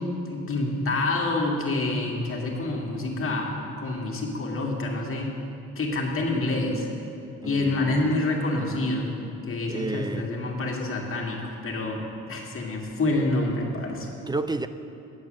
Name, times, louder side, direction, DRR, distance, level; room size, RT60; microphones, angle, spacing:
voice 1, 0.0-5.3 5.8-6.9 7.4-9.1 9.4-12.0 12.3-14.1, left 2 dB, 45° left, -1 dB, 1.9 m, -27 dB
voice 2, 7.4-8.2 9.7-10.3 14.3-14.7, right 2 dB, 15° right, 11 dB, 0.4 m, -31 dB
8.8 x 8.1 x 6.5 m, 2.6 s
cardioid pair, 90°, 30 cm